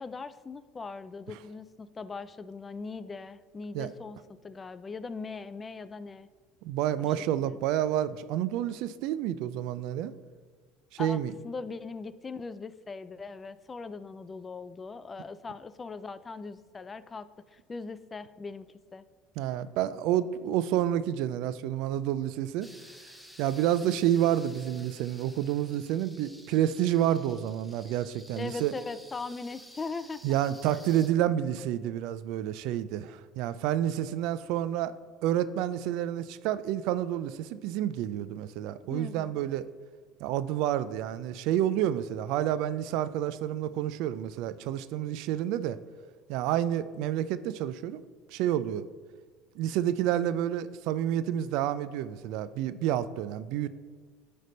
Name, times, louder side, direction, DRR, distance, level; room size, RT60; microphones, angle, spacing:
voice 1, 0.0-6.3 7.0-7.6 11.0-11.2 11.4-19.0 28.4-30.2 38.9-39.4, left 4 dB, 25° left, 14 dB, 0.4 m, -40 dB
voice 2, 6.6-10.1 10.9-11.3 19.4-22.7 23.4-28.7 30.2-34.9 35.2-39.7 40.2-45.8 46.3-48.0 48.3-48.9 49.6-53.7, right 11 dB, 70° right, 15 dB, 0.3 m, -29 dB
sound 1, 22.6-31.1, equal, ahead, 0.7 m, -52 dB
9.5 x 3.3 x 5.2 m, 1.5 s
supercardioid pair, 85°, 0 cm